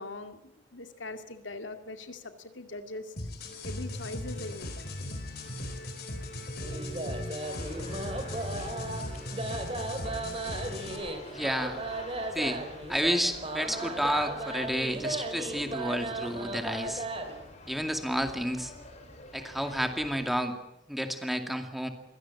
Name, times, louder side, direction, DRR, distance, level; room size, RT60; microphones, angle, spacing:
voice 1, 0.0-3.1 3.6-4.7, left 2 dB, 80° left, 7 dB, 2.3 m, -41 dB
sound 1, 3.2-11.0, left 1 dB, 55° left, 4.0 m, -38 dB
sound 2, 6.6-17.3, right 2 dB, 30° right, 3.1 m, -36 dB
sound 3, 7.4-20.4, left 1 dB, 40° left, 4.2 m, -47 dB
voice 2, 11.3-11.8 12.3-12.6 12.9-17.0 17.7-18.7 19.3-20.6 20.9-21.9, equal, ahead, 6 dB, 2.3 m, -30 dB
23.5 x 17.0 x 8.6 m, 0.85 s
head